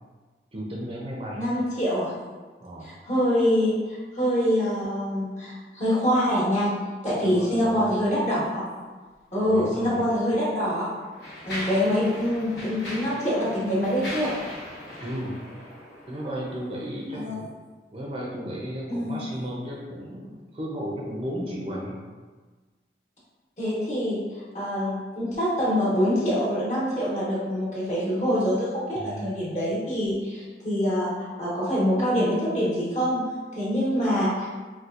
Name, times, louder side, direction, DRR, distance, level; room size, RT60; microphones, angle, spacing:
voice 1, 0.5-1.5 2.6-2.9 7.2-8.0 9.4-10.0 15.0-15.4 16.1-17.5 17.9-22.0 28.9-29.5, equal, 30° right, -4 dB, 0.5 m, -34 dB
voice 2, 1.4-2.1 2.8-6.7 7.0-8.6 9.3-10.9 11.4-14.4 17.1-17.4 18.9-19.1 23.6-34.5, equal, 40° left, -8 dB, 1.1 m, -25 dB
Mechanisms, 9.8-10.0 10.7-16.5, left 1 dB, 75° left, 0.9 m, -38 dB
4.1 x 2.3 x 2.4 m, 1.4 s
head